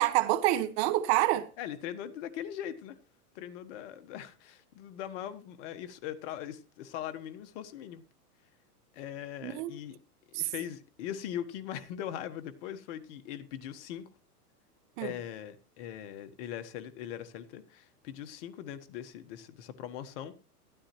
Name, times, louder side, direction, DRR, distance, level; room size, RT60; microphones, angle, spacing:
voice 1, 0.0-1.5 9.4-9.7 10.3-10.5 15.0-15.1, right 15 dB, 40° right, 1.4 m, -27 dB
voice 2, 1.6-3.0 3.3-8.0 8.9-10.0 10.3-14.0 15.0-20.4, left 10 dB, 45° left, 1.3 m, -40 dB
12.5 x 12.5 x 3.0 m
hypercardioid pair, 135°, 47 cm